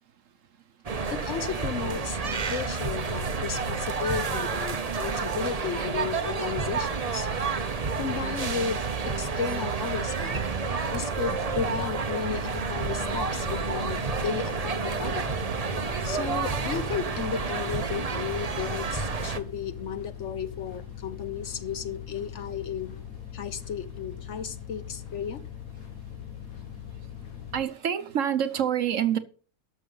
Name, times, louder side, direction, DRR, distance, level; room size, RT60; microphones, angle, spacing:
sound 1, 0.9-19.4, right 4 dB, 35° right, 0.7 m, -30 dB
voice 1, 1.1-7.3 8.0-8.8 9.2-10.4 10.9-15.3 16.0-23.0 23.3-25.4, left 7 dB, 60° left, 1.1 m, -34 dB
sound 2, 11.3-27.6, left 9 dB, 75° left, 1.4 m, -41 dB
voice 2, 27.5-29.2, right 9 dB, 60° right, 1.2 m, -26 dB
12.5 x 6.7 x 5.5 m
omnidirectional pair, 1.5 m